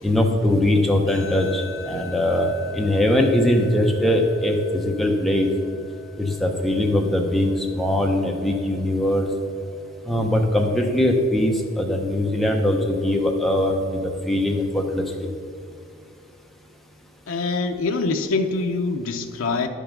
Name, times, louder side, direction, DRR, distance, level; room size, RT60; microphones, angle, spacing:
voice 1, 0.0-5.5 6.2-9.3 10.0-15.3, left 1 dB, ahead, 1 dB, 0.7 m, -21 dB
sound 1, 1.1-14.0, left 7 dB, 20° right, 1.9 m, -45 dB
voice 2, 17.3-19.7, left 3 dB, 65° left, 4 dB, 0.5 m, -24 dB
10.5 x 5.4 x 5.9 m, 2.5 s
head